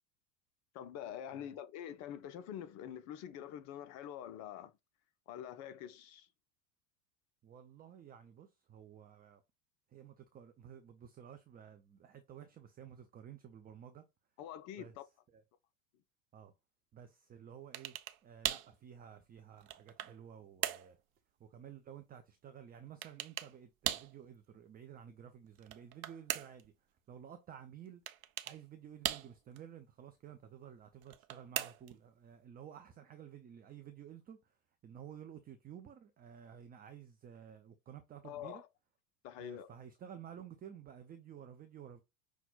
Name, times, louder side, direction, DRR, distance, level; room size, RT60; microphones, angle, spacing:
voice 1, 0.7-4.7 5.3-6.3 14.4-15.0 38.2-38.7 39.2-39.7, left 10 dB, 35° left, 0.6 m, -45 dB
voice 2, 7.4-9.4 9.9-14.1 14.8-15.4 16.3-16.5 16.9-18.0 18.2-21.0 21.4-26.7 27.1-28.0 28.4-34.6 34.8-38.6 39.4-42.0, right 9 dB, 20° right, 0.6 m, -53 dB
sound 1, 17.7-18.2 18.4-18.7 19.4-20.2 20.6-20.9 23.0-23.5 23.8-24.1 25.6-26.7 28.1-28.6 29.0-29.6 31.0-32.0, right 13 dB, 60° right, 0.7 m, -39 dB
5.9 x 2.3 x 3.9 m
figure-of-eight pair, 85°, 48 cm